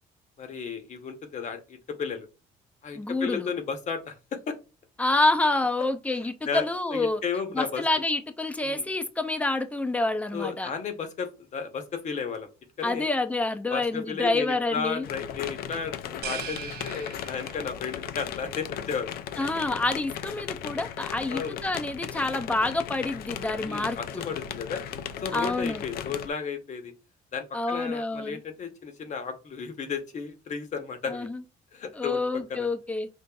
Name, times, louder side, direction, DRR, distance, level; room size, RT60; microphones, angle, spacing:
voice 1, 0.4-2.3 2.8-4.5 6.5-6.6 6.9-7.8 8.6-8.9 10.3-12.5 12.8-13.1 13.7-19.1 21.3-21.6 23.6-24.8 25.2-26.9 27.3-31.3 31.7-32.7, left 6 dB, 45° left, 0.9 m, -33 dB
voice 2, 2.9-3.5 5.0-7.2 7.5-10.7 12.8-15.1 19.4-24.2 25.3-25.8 27.5-28.4 31.1-31.4 32.0-33.1, left 2 dB, 10° left, 0.5 m, -27 dB
sound 1, 15.0-26.3, left 9 dB, 65° left, 0.4 m, -37 dB
sound 2, 16.2-17.9, right 9 dB, 70° right, 0.5 m, -39 dB
5.2 x 2.5 x 2.3 m
cardioid pair, 110°, 17 cm